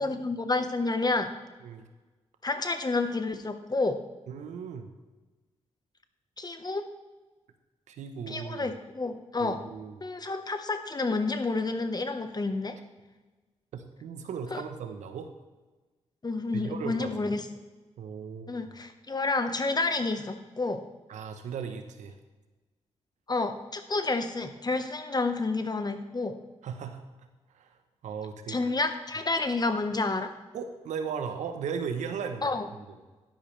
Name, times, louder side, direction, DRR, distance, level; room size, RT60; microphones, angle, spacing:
voice 1, 0.0-1.3 2.4-4.0 6.4-6.8 8.3-9.6 10.0-12.8 14.5-14.6 16.2-17.5 18.5-20.8 23.3-26.4 28.5-30.3 32.4-32.7, left 3 dB, 35° left, 8 dB, 1.2 m, -29 dB
voice 2, 4.3-4.9 7.9-8.7 9.4-10.0 13.7-15.3 16.5-17.4 18.0-18.6 21.1-22.2 26.6-27.0 27.5-28.7 30.5-32.5, right 6 dB, 85° right, 7 dB, 1.0 m, -37 dB
11.5 x 10.0 x 3.4 m, 1.2 s
supercardioid pair, 50°, 12 cm